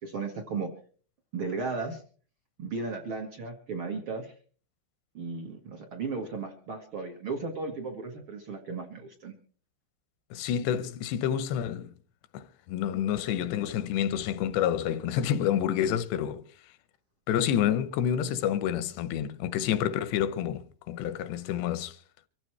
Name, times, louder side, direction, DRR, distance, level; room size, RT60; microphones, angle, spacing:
voice 1, 0.0-0.7 1.3-2.0 2.6-4.3 5.1-9.3, right 4 dB, 60° right, 1.3 m, -35 dB
voice 2, 10.3-11.9 12.3-16.5 17.3-22.0, left 10 dB, 80° left, 3.0 m, -28 dB
24.5 x 15.0 x 3.2 m
omnidirectional pair, 4.9 m